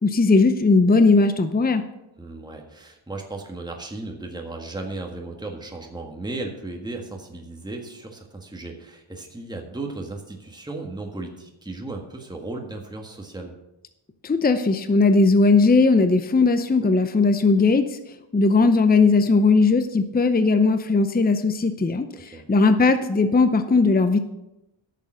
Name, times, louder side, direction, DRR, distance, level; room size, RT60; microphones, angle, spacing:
voice 1, 0.0-1.9 14.2-18.0 18.3-24.2, left 3 dB, 20° left, 9 dB, 0.7 m, -18 dB
voice 2, 2.2-13.5 22.1-22.4, right 2 dB, 10° right, 1 dB, 1.6 m, -35 dB
10.5 x 6.8 x 6.4 m, 0.92 s
wide cardioid pair, 85°, 48 cm